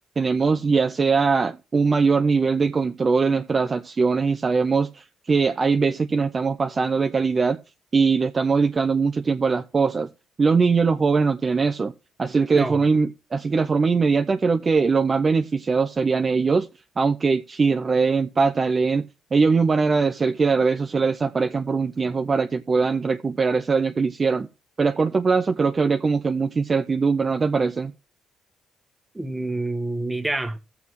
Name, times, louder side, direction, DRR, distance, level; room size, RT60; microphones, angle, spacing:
voice 1, 0.2-7.6 7.9-10.1 10.4-11.9 12.2-16.7 17.0-19.1 19.3-24.5 24.8-27.9, right 4 dB, 35° right, 0.5 m, -21 dB
voice 2, 29.1-30.6, right 2 dB, 10° right, 1.3 m, -27 dB
17.5 x 7.0 x 3.1 m
cardioid pair, 90°, 0 cm